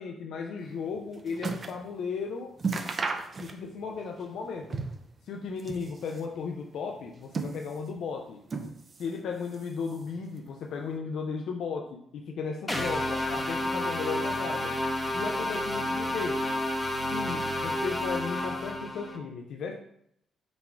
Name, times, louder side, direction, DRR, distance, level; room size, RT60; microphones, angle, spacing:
voice 1, 0.0-2.5 3.4-4.8 5.2-8.4 9.0-14.8 15.1-16.4 17.1-19.7, left 5 dB, 75° left, 2 dB, 0.4 m, -35 dB
sound 1, 0.7-1.9 2.2-2.3 2.6-3.9 4.2-5.1 5.5-6.3 7.0-8.0 8.5-9.2 9.5-10.2 10.9-11.0, right 4 dB, 45° right, 0.5 m, -35 dB
sound 2, 12.7-19.2, left 1 dB, 15° left, 0.7 m, -30 dB
4.0 x 2.3 x 4.3 m, 0.71 s
supercardioid pair, 70°, 0 cm